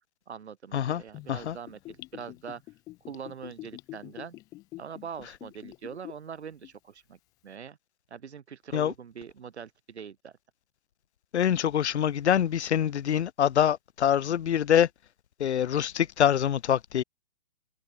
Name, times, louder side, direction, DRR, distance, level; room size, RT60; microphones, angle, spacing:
voice 1, 0.3-2.6 3.1-4.4 4.8-7.2 7.4-7.8 8.1-10.3, right 7 dB, 70° right, 5.9 m, -43 dB
Gurgling / Bathtub (filling or washing), 1.1-6.3 6.6-6.7, left 18 dB, 10° left, 0.7 m, -45 dB
voice 2, 11.3-14.9 15.4-17.0, left 9 dB, 70° left, 0.9 m, -25 dB
hypercardioid pair, 160°, 35 cm